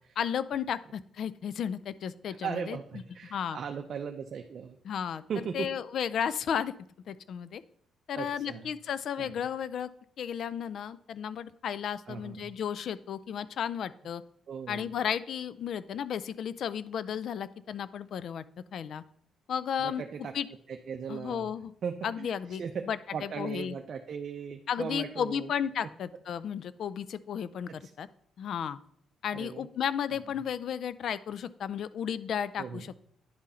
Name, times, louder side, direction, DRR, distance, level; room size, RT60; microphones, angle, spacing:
voice 1, 0.2-2.8 3.3-3.6 4.8-5.2 5.5-6.7 7.1-7.6 8.1-9.9 10.2-14.2 14.7-18.4 18.7-19.0 19.5-20.0 20.3-20.5 21.1-21.7 22.0-23.8 24.7-28.1 28.4-28.8 29.2-32.9, left 8 dB, 65° left, 16 dB, 0.3 m, -33 dB
voice 2, 2.4-4.8 5.3-5.7 8.1-8.7 9.2-9.5 12.1-12.5 14.5-14.9 19.8-20.3 20.7-21.5 21.8-25.5 27.7-27.9 29.3-29.7 32.6-32.9, right 6 dB, 55° right, 4 dB, 0.5 m, -38 dB
10.0 x 3.8 x 4.2 m, 0.66 s
cardioid pair, 90°, 0 cm